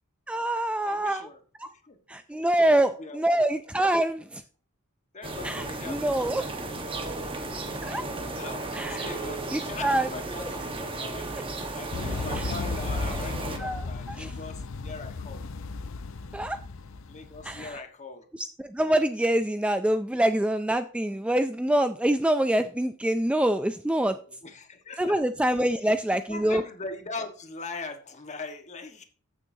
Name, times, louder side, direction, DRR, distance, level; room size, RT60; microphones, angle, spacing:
voice 1, 0.3-1.3 1.6-1.7 2.1-4.4 5.4-6.5 7.8-8.0 8.7-9.1 9.5-10.1 12.4-12.5 13.6-14.3 16.3-16.6 17.4-17.8 18.4-24.2 25.0-26.6, right 1 dB, 5° right, 10 dB, 0.3 m, -25 dB
voice 2, 0.8-1.4 1.8-2.0 2.6-3.5 5.1-7.5 8.0-11.3 11.7-15.4 17.1-18.3 24.0-25.2 25.6-29.0, left 3 dB, 35° left, 5 dB, 1.4 m, -41 dB
sound 1, 5.2-13.6, right 2 dB, 25° right, 1.3 m, -34 dB
sound 2, 11.9-17.8, left 3 dB, 70° left, 0.6 m, -35 dB
14.5 x 6.7 x 2.7 m, 0.42 s
head